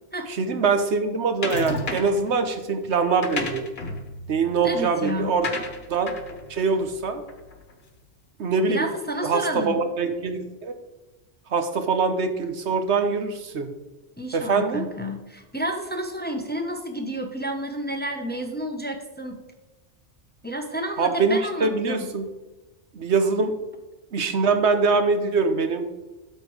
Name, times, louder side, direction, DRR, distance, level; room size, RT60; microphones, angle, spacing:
voice 1, 0.3-3.6 4.3-5.5 5.9-6.1 6.5-7.2 8.4-8.9 9.2-10.7 11.5-13.7 14.3-14.9 21.0-22.3 22.9-23.6 24.1-25.9, right 4 dB, 70° right, 8 dB, 1.2 m, -23 dB
sound 1, 1.4-2.3 3.0-7.7, left 3 dB, 55° left, 1.4 m, -33 dB
voice 2, 4.6-5.3 8.7-9.8 14.2-19.4 20.4-22.0, equal, 10° left, 4 dB, 1.0 m, -30 dB
12.5 x 4.5 x 5.0 m, 1.2 s
omnidirectional pair, 1.2 m